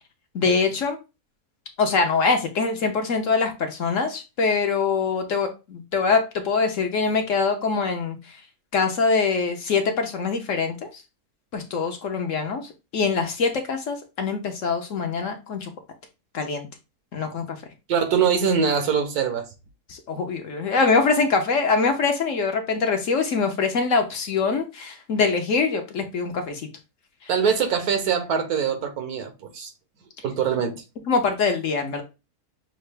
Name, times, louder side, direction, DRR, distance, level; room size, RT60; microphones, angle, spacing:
voice 1, 0.3-1.0 1.8-8.2 8.7-11.0 11.5-15.7 16.3-16.7 17.1-17.6 19.9-26.6 27.2-27.3 31.1-32.0, left 4 dB, 60° left, 1.0 m, -23 dB
voice 2, 17.9-19.4 27.3-29.7 30.2-30.8, right 7 dB, 70° right, 1.4 m, -23 dB
6.6 x 2.4 x 3.3 m
omnidirectional pair, 1.7 m